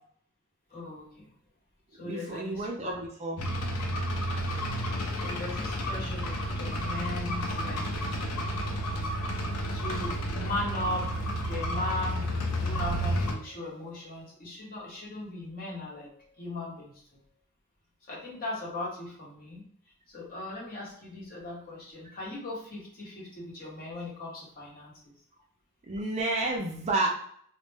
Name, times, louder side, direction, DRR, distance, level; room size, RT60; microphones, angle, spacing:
voice 1, 0.7-1.3 2.0-3.0 5.1-7.8 9.7-11.1 11.4-17.2 18.1-19.6 20.1-25.1, left 2 dB, 40° left, -5 dB, 0.9 m, -38 dB
voice 2, 2.0-3.4 25.9-27.1, right 2 dB, 30° right, 0 dB, 0.3 m, -30 dB
sound 1, 3.4-13.3, equal, 80° left, 0.5 m, -31 dB
2.1 x 2.0 x 3.2 m, 0.64 s
head